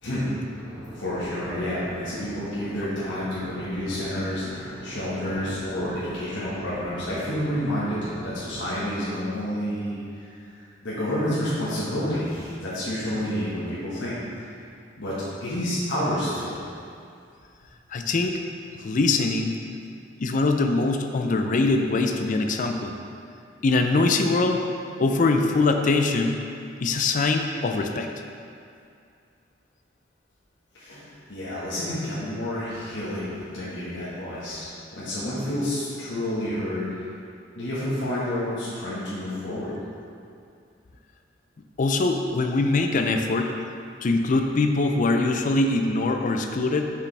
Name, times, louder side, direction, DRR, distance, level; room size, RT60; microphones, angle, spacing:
sound 1, 0.5-8.7, equal, 5° right, 1.5 m, -41 dB
voice 1, 0.9-10.5 10.8-14.2 15.0-15.1 15.4-16.6 30.7-36.8 37.5-39.7, left 1 dB, 80° left, -10 dB, 1.4 m, -29 dB
voice 2, 17.9-18.4 18.8-19.6 20.2-22.9 23.6-24.6 25.0-26.4 26.8-28.1 41.8-43.5 44.0-46.8, left 3 dB, 45° left, 5 dB, 0.4 m, -23 dB
6.7 x 4.9 x 3.3 m, 2.4 s
head